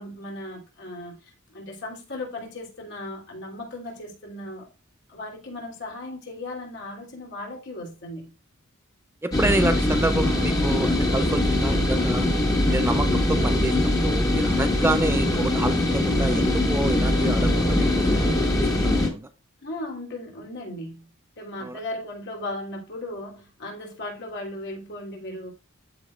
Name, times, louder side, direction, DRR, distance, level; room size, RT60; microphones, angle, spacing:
voice 1, 0.0-4.7 5.1-8.3 19.6-21.1 21.4-25.5, left 1 dB, 55° left, 3.1 m, -36 dB
voice 2, 9.2-12.3 12.7-19.3 21.6-21.8, right 2 dB, 10° right, 0.4 m, -28 dB
sound 1, 9.3-19.1, left 1 dB, 15° left, 1.8 m, -22 dB
13.5 x 4.7 x 2.4 m
head